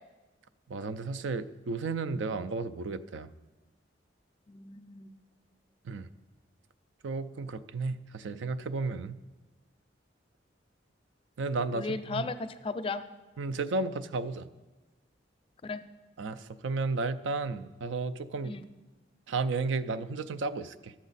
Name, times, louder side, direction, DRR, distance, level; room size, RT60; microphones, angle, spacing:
voice 1, 0.7-3.3 5.8-6.1 7.0-9.2 11.4-12.2 13.4-14.5 16.2-18.6 19.3-20.9, right 3 dB, 85° right, 13 dB, 0.4 m, -33 dB
voice 2, 4.5-5.1 11.7-13.0 15.6-15.8 18.4-18.7, left 3 dB, 30° left, 10 dB, 0.4 m, -36 dB
11.5 x 7.2 x 4.0 m, 1.2 s
head